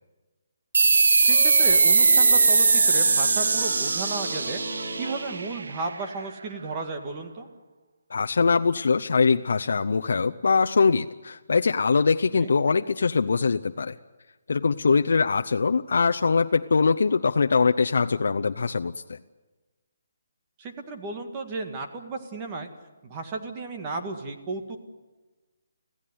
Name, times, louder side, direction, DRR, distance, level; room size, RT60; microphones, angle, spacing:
sound 1, 0.7-5.9, right 4 dB, 80° right, 1.0 m, -20 dB
voice 1, 1.2-4.6 5.0-7.5 12.3-12.5 20.6-22.7 23.0-24.8, right 3 dB, 20° right, 4 dB, 1.8 m, -34 dB
sound 2, 1.3-6.0, right 1 dB, 60° right, 7.0 m, -38 dB
voice 2, 8.1-14.0 14.5-19.2, left 4 dB, 70° left, 6 dB, 0.7 m, -22 dB
25.5 x 16.0 x 9.5 m, 1.2 s
hypercardioid pair, 175°, 0 cm